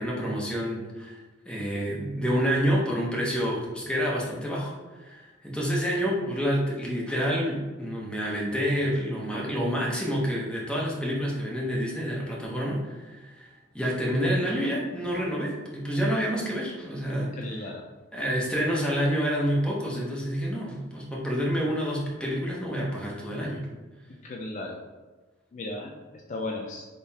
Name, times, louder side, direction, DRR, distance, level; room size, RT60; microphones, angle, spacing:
voice 1, 0.0-4.7 5.0-17.4 18.1-23.6, equal, 5° left, -4 dB, 0.8 m, -28 dB
voice 2, 17.3-17.8 24.1-24.8 25.5-26.9, left 2 dB, 40° left, 1 dB, 0.4 m, -36 dB
3.7 x 3.3 x 2.8 m, 1.3 s
head